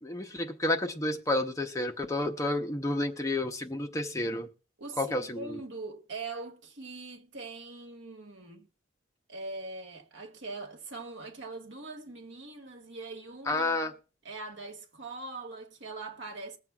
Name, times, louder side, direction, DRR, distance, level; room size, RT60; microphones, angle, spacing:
voice 1, 0.0-4.5 5.0-5.6 13.5-13.9, left 1 dB, 15° left, 0.8 m, -30 dB
voice 2, 4.8-8.7 9.3-13.9 14.2-16.6, right 3 dB, 80° right, 1.7 m, -42 dB
21.0 x 7.5 x 2.4 m
head